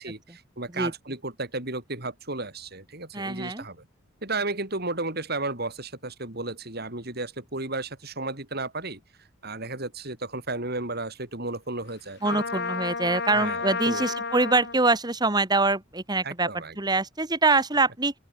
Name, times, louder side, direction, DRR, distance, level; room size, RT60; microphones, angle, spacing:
voice 1, 0.0-3.8 4.2-9.0 9.4-12.4 13.4-14.1 16.2-17.0, right 2 dB, 50° right, 6.2 m, -33 dB
voice 2, 3.1-3.6 12.2-16.5 16.8-18.1, right 3 dB, 20° right, 1.9 m, -24 dB
Trumpet, 12.2-14.8, left 4 dB, 55° left, 7.4 m, -31 dB
open air
head